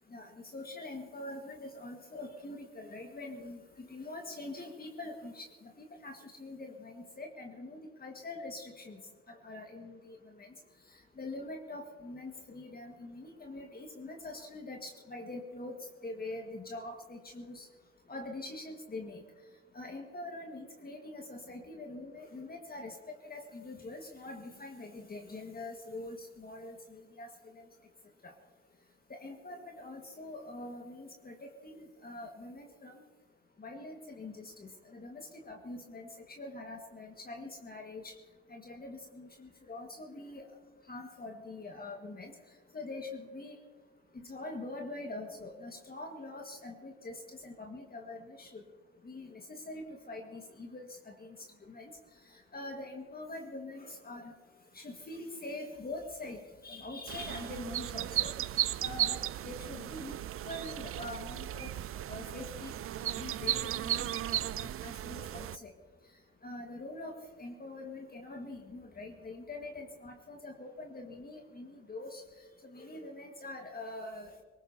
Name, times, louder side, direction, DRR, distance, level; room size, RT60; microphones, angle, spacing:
voice 1, 0.1-5.5 5.8-9.0 9.3-10.5 11.2-15.8 16.0-17.7 18.1-19.2 19.7-22.9 23.2-27.3 27.6-27.7 28.2-28.3 29.1-32.9 33.6-36.1 36.4-38.1 38.5-40.5 40.9-42.3 42.7-43.6 44.1-48.6 49.0-51.4 51.7-51.9 52.5-54.3 54.7-58.3 58.8-60.2 60.4-61.7 62.1-62.8 63.0-65.7 66.4-72.2 72.6-74.3, left 2 dB, 30° left, 2 dB, 1.8 m, -44 dB
sound 1, 57.1-65.6, right 12 dB, 45° right, 0.4 m, -35 dB
22.0 x 19.5 x 2.8 m, 1.4 s
cardioid pair, 90°, 30 cm